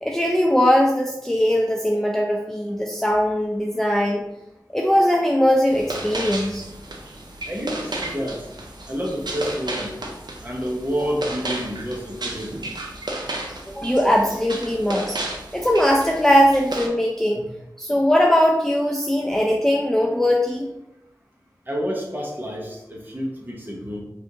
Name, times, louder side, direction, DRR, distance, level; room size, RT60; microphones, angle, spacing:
voice 1, 0.0-4.2 4.7-6.6 13.7-15.2 15.5-17.4 17.8-20.7, equal, 5° left, -1 dB, 0.3 m, -20 dB
sound 1, 5.7-16.9, right 2 dB, 75° right, 0.5 m, -33 dB
voice 2, 7.5-8.5 8.9-9.9 10.4-12.7 17.3-17.5 21.7-24.0, equal, 25° right, -2 dB, 0.8 m, -29 dB
3.4 x 2.4 x 2.7 m, 0.87 s
wide cardioid pair, 45°, 7 cm